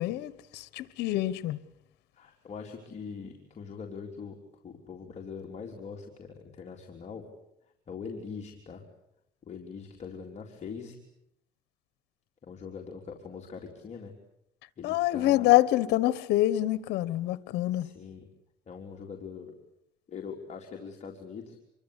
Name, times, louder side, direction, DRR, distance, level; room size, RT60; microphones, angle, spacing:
voice 1, 0.0-1.6 14.8-17.9, left 15 dB, 85° left, 1.3 m, -26 dB
voice 2, 2.2-4.4 4.6-7.2 7.9-8.8 9.5-11.0 12.4-14.1 14.8-15.5 17.7-18.2 18.7-19.5 20.1-21.6, left 5 dB, 40° left, 3.8 m, -42 dB
27.0 x 24.0 x 8.3 m
cardioid pair, 110°, 17 cm